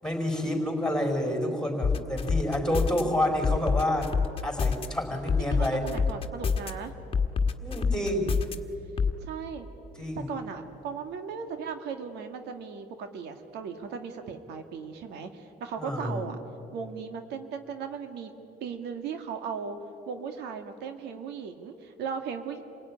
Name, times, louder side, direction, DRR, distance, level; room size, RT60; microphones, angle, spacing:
voice 1, 0.0-5.9 7.6-8.3 10.0-10.3 15.8-16.3, left 1 dB, 5° left, 3 dB, 5.0 m, -29 dB
sound 1, 1.8-3.0 3.4-4.9 5.3-6.7 7.1-8.6 9.0-9.1, left 5 dB, 35° left, 1.6 m, -26 dB
voice 2, 5.5-6.9 9.2-9.7 10.3-16.4 16.7-18.3 18.6-19.8 20.1-22.6, right 6 dB, 85° right, 7 dB, 1.9 m, -37 dB
28.0 x 17.5 x 10.0 m, 2.8 s
cardioid pair, 110°, 17 cm